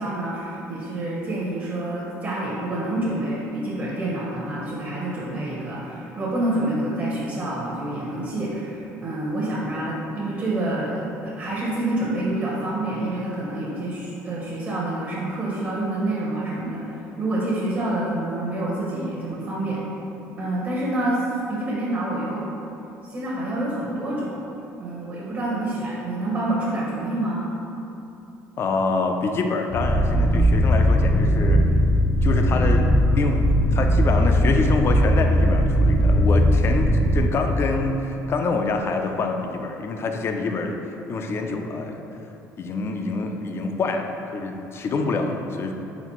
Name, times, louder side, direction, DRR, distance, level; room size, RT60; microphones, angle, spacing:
voice 1, 0.0-19.8 20.4-21.2 21.5-22.4 23.0-24.4 24.8-27.5, right 1 dB, 40° right, -6 dB, 0.8 m, -27 dB
voice 2, 28.6-31.6 32.2-42.0 42.6-44.1 44.3-45.7, left 3 dB, 40° left, 4 dB, 0.4 m, -26 dB
sound 1, 29.7-37.2, equal, 60° left, 0.8 m, -19 dB
4.0 x 4.0 x 3.0 m, 2.8 s
cardioid pair, 110°, 6 cm